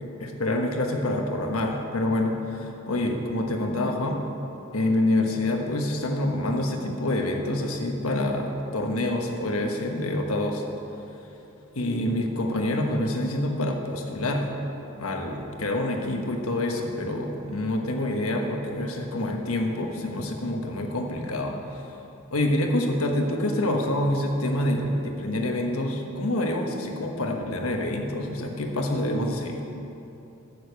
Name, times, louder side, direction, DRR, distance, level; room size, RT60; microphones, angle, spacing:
voice 1, 0.2-4.2 4.7-10.6 11.7-14.6 15.0-21.8 22.3-29.6, left 1 dB, 85° left, 3 dB, 1.3 m, -27 dB
9.4 x 7.0 x 8.0 m, 2.9 s
head